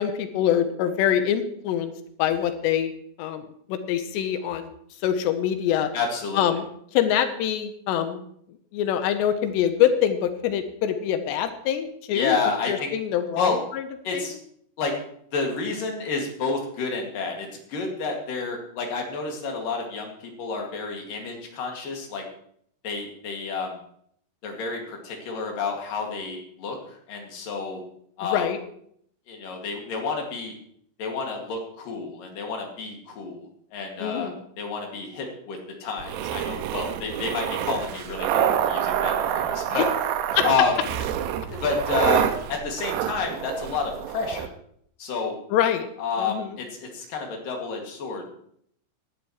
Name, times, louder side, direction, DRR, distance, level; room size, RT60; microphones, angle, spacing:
voice 1, 0.0-1.9 2.2-2.9 3.2-3.4 3.7-4.7 5.0-5.9 6.4-6.7 6.9-8.2 8.7-12.4 12.7-13.8 14.1-14.2 28.2-28.6 34.0-34.4 40.3-40.5 45.5-45.9 46.2-46.6, left 10 dB, 90° left, 8 dB, 3.1 m, -24 dB
voice 2, 5.9-6.6 12.1-12.9 13.4-13.6 14.0-14.4 14.8-14.9 15.3-22.2 22.8-23.8 24.4-27.8 28.2-28.5 29.3-30.5 31.0-33.4 33.7-34.3 34.6-39.9 40.4-40.8 41.5-44.5 45.0-45.3 46.0-48.5, left 4 dB, 55° left, 1 dB, 3.6 m, -29 dB
sound 1, 36.0-44.5, right 10 dB, 80° right, 2.8 m, -27 dB
18.5 x 11.5 x 3.1 m, 0.66 s
omnidirectional pair, 4.9 m